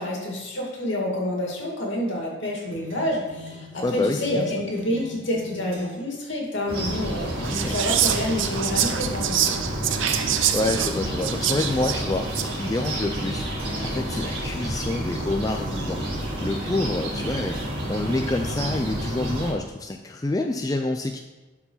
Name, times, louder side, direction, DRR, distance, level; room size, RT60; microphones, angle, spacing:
voice 1, 0.0-9.6, left 1 dB, 70° left, -1 dB, 2.3 m, -28 dB
sound 1, 2.7-6.1 6.8-7.2 8.0-8.4 8.7-12.2 12.8-13.3 13.6-14.9, left 1 dB, 90° right, 1.8 m, -42 dB
voice 2, 3.8-4.4 7.4-7.8 10.5-13.5 13.8-16.0 16.4-21.2, left 2 dB, 20° left, 4 dB, 0.3 m, -27 dB
sound 2, 6.7-19.5, right 1 dB, 30° right, 2.9 m, -30 dB
Whispering, 7.4-12.6, right 10 dB, 70° right, 0.7 m, -26 dB
11.5 x 4.6 x 5.6 m, 1.2 s
head